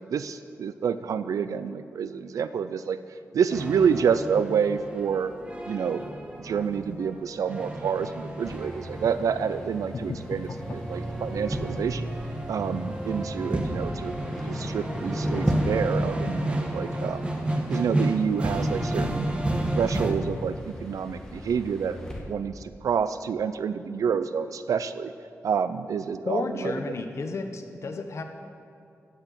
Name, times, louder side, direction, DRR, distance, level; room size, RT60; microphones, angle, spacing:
voice 1, 0.0-3.0 3.3-5.3 5.7-6.0 6.4-12.1 12.5-14.1 14.4-17.3 17.7-19.3 19.7-20.5 20.8-22.0 22.3-25.1 25.4-26.7, right 7 dB, 85° right, 12 dB, 0.4 m, -28 dB
sound 1, 3.5-20.1, right 1 dB, 20° right, 1.4 m, -31 dB
sound 2, 8.4-22.2, equal, 10° left, 2.0 m, -40 dB
voice 2, 26.3-28.2, left 3 dB, 55° left, 5 dB, 1.0 m, -31 dB
15.5 x 6.0 x 8.4 m, 2.5 s
wide cardioid pair, 120°, 6 cm